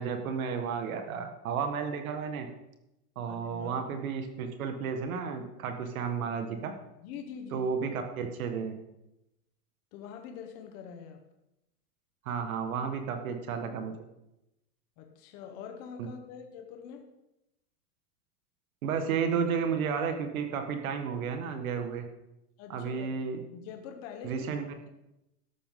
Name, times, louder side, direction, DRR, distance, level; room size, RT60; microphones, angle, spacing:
voice 1, 0.0-2.5 3.1-6.7 7.5-8.7 12.2-13.9 18.8-22.0 22.7-23.4 24.2-24.7, right 6 dB, 60° right, 6 dB, 1.7 m, -32 dB
voice 2, 3.3-3.9 7.0-7.7 9.9-11.2 15.0-17.1 22.6-23.2 23.5-24.5, left 7 dB, 25° left, 4 dB, 1.0 m, -44 dB
13.0 x 11.5 x 3.8 m, 0.90 s
supercardioid pair, 170°, 48 cm